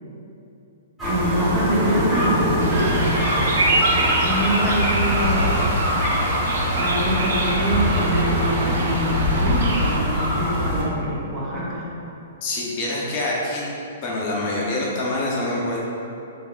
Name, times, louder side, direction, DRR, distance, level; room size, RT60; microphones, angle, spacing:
sound 1, 1.0-10.8, equal, 15° right, 1.2 m, -22 dB
voice 1, 1.0-2.5 4.2-5.7 6.8-11.9, right 1 dB, 30° right, -6 dB, 0.8 m, -25 dB
Bird vocalization bird call bird song, 2.6-10.0, right 2 dB, 60° right, 0.4 m, -27 dB
voice 2, 12.4-13.6 14.0-15.9, left 2 dB, 40° left, -4 dB, 0.6 m, -25 dB
3.4 x 3.3 x 2.4 m, 2.8 s
figure-of-eight pair, 115°, 0 cm